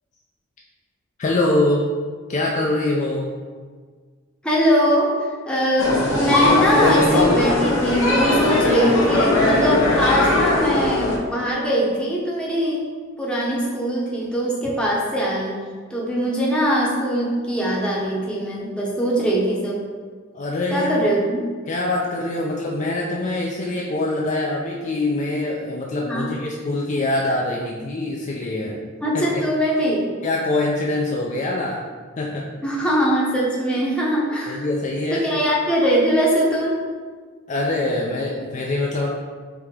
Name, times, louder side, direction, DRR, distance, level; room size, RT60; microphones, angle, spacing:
voice 1, 1.2-1.9 2.3-3.3 20.3-21.0 21.7-28.8 29.1-29.2 30.2-31.8 32.2-32.5 34.5-35.3 37.5-39.1, left 2 dB, 40° left, -2 dB, 0.4 m, -24 dB
voice 2, 4.4-5.1 5.5-12.9 13.2-15.5 15.9-19.8 20.7-21.4 26.1-26.3 29.0-30.1 32.6-34.6 35.1-36.8, equal, 5° left, -5 dB, 0.8 m, -21 dB
sound 1, 5.8-11.2, left 2 dB, 85° left, 0.9 m, -19 dB
4.7 x 2.8 x 3.6 m, 1.5 s
head